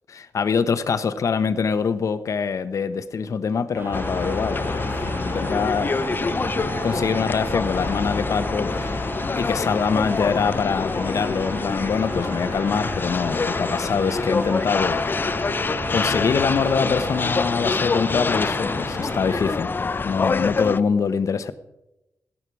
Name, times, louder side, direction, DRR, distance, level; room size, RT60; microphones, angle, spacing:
voice 1, 0.1-6.0 6.8-9.0 9.4-15.3 15.9-19.7 20.0-21.5, left 6 dB, 60° left, 12 dB, 1.0 m, -24 dB
sound 1, 3.7-19.6, right 3 dB, 35° right, 2.1 m, -34 dB
sound 2, 3.9-20.8, left 4 dB, 35° left, 0.5 m, -26 dB
16.0 x 11.0 x 4.8 m, 0.92 s
cardioid pair, 75°, 6 cm